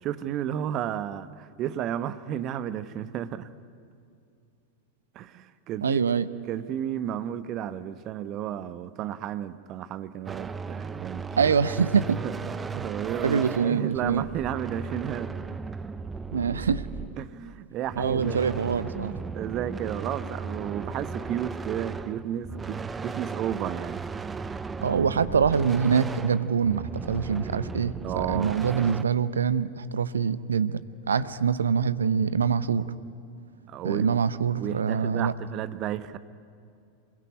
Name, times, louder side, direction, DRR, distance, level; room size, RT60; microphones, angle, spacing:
voice 1, 0.0-3.5 5.1-6.0 6.5-11.5 12.2-12.4 12.7-15.4 17.2-18.4 19.3-24.0 28.0-28.6 31.2-31.3 33.7-34.2 34.6-36.2, right 10 dB, 35° right, 13 dB, 1.1 m, -32 dB
voice 2, 5.8-6.3 11.4-12.2 13.2-14.3 16.3-16.9 18.0-19.1 24.8-30.8 31.1-32.9 33.8-35.3, right 6 dB, 70° right, 15 dB, 0.9 m, -25 dB
sound 1, 10.3-17.4 17.8-29.0, right 4 dB, 15° right, 0.8 m, -36 dB
26.5 x 21.5 x 9.9 m, 2.5 s
figure-of-eight pair, 90°, 0 cm